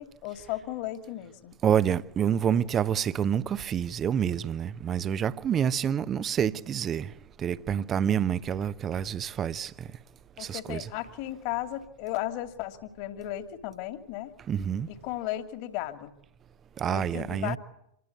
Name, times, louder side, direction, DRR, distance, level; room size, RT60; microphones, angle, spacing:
voice 1, 0.0-1.5 10.4-14.3 14.9-16.1 16.9-17.6, left 14 dB, 45° left, 2.8 m, -35 dB
voice 2, 1.6-7.1 7.4-9.7 10.4-10.9 14.5-14.9 16.8-17.6, right 8 dB, 25° right, 1.0 m, -27 dB
27.5 x 21.0 x 9.6 m
figure-of-eight pair, 90°, 0 cm